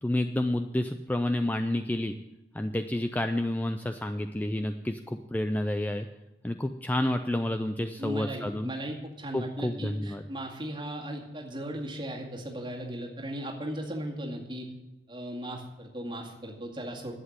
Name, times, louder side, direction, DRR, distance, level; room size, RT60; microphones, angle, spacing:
voice 1, 0.0-2.1 2.5-6.1 6.4-8.7 9.3-10.2, left 1 dB, 10° left, 8 dB, 0.3 m, -29 dB
voice 2, 8.0-14.7 15.1-17.1, equal, 25° right, -1 dB, 2.1 m, -37 dB
11.5 x 8.0 x 8.0 m, 0.99 s
head